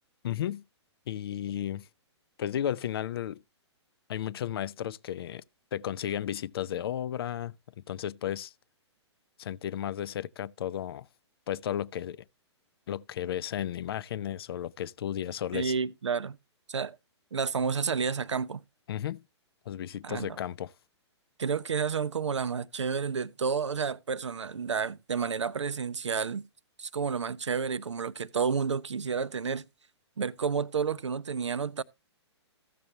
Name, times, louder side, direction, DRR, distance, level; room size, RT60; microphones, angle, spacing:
voice 1, 0.2-0.6 1.1-1.9 2.4-3.4 4.1-5.4 5.7-7.5 7.9-8.5 9.4-11.1 11.5-12.2 12.9-15.7 18.9-19.2 19.7-20.7, left 10 dB, 55° left, 0.4 m, -33 dB
voice 2, 15.5-16.4 16.7-17.0 17.3-18.6 20.0-20.4 21.4-26.4 26.8-29.6 30.2-31.8, right 6 dB, 80° right, 0.5 m, -30 dB
14.5 x 6.8 x 2.8 m
figure-of-eight pair, 120°, 15 cm